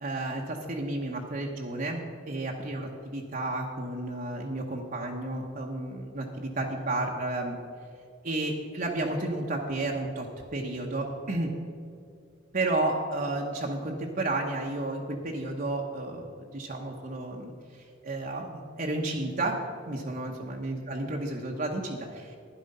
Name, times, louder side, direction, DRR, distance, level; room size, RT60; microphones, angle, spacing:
voice 1, 0.0-7.6 8.2-10.3 10.5-11.5 12.5-19.6 19.9-22.4, right 2 dB, 45° right, 0 dB, 1.0 m, -32 dB
11.5 x 10.5 x 5.5 m, 2.4 s
head